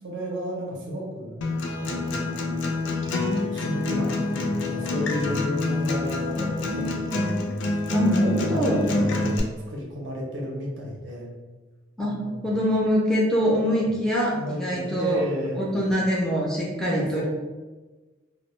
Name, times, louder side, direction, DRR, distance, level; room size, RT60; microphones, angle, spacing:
voice 1, 0.0-1.5 1.8-2.7 3.5-7.5 8.2-11.3 12.0-12.5 13.8-13.9 14.3-15.7 16.8-17.2, equal, 75° right, -2 dB, 0.6 m, -33 dB
Acoustic guitar, 1.4-9.4, left 2 dB, 75° left, 0.4 m, -26 dB
voice 2, 6.4-6.9 7.9-8.9 12.0-12.2 12.4-15.2 15.6-17.2, equal, 5° left, -4 dB, 0.3 m, -24 dB
2.1 x 2.1 x 3.0 m, 1.2 s
head